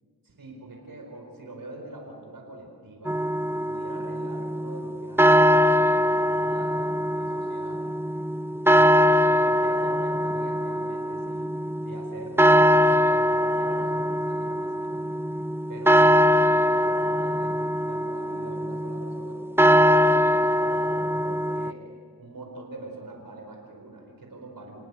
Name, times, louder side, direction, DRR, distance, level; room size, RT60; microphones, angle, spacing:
voice 1, 0.2-3.2 3.5-7.8 8.7-11.5 11.8-15.1 15.7-19.4 19.6-21.8 22.2-24.8, right 2 dB, 65° right, 1 dB, 4.6 m, -43 dB
sound 1, 3.1-21.7, equal, 5° right, 0.7 m, -22 dB
29.0 x 18.5 x 8.4 m, 2.3 s
cardioid pair, 50°, 36 cm